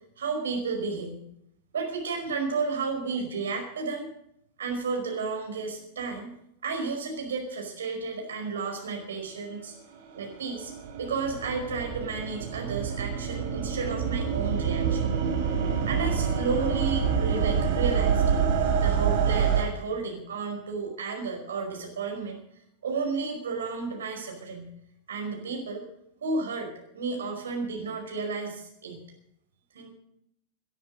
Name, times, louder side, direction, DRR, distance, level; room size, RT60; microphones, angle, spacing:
voice 1, 0.2-1.2 1.7-4.1 4.6-6.3 6.6-9.7 10.1-10.7 11.0-15.2 15.9-18.4 18.8-22.4 22.8-24.7 25.1-25.8 26.2-29.0 29.7-29.9, right 4 dB, 65° right, 2 dB, 5.2 m, -32 dB
sound 1, 9.9-19.6, right 7 dB, 50° right, 4.0 m, -27 dB
19.0 x 10.5 x 6.6 m, 0.78 s
figure-of-eight pair, 90°, 0 cm